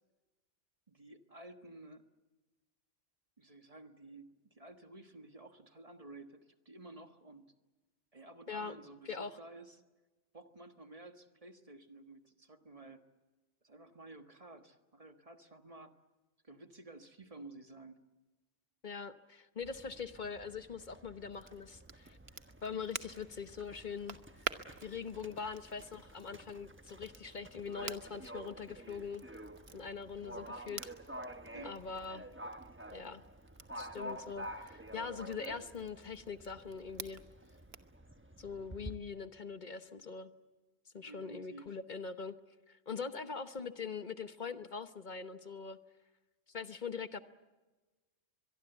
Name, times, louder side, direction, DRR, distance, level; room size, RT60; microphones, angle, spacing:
voice 1, 0.9-2.1 3.4-7.5 8.1-9.8 10.3-13.0 13.6-16.0 16.4-18.0 31.5-31.8 41.0-41.8, right 2 dB, 30° right, 7 dB, 1.5 m, -53 dB
voice 2, 18.8-22.2 22.6-24.2 24.8-29.2 29.7-30.9 31.6-32.2 32.9-33.2 33.7-37.2 38.4-40.3 40.9-42.3 42.7-45.8 46.5-47.2, left 5 dB, 40° left, 11 dB, 1.1 m, -42 dB
Livestock farm animals working animals, 19.6-38.9, right 1 dB, 10° right, 1.0 m, -50 dB
Crackle, 21.3-38.0, right 6 dB, 55° right, 1.3 m, -50 dB
24.0 x 22.5 x 8.1 m, 1.2 s
omnidirectional pair, 1.3 m